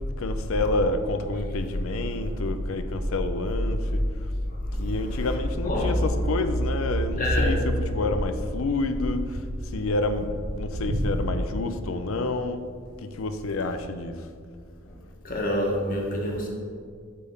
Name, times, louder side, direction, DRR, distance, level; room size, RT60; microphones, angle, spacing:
voice 1, 0.2-4.0 4.8-9.4 9.7-12.6 13.0-14.3, left 2 dB, 70° left, 9 dB, 0.5 m, -29 dB
sound 1, 3.0-3.5 4.3-6.1 6.5-11.4, equal, 80° right, 0.8 m, -34 dB
voice 2, 4.4-5.3 5.6-5.9 7.2-7.6 14.9-15.0 15.2-16.5, left 1 dB, 40° left, 0 dB, 1.3 m, -27 dB
8.3 x 3.6 x 5.4 m, 2.1 s
head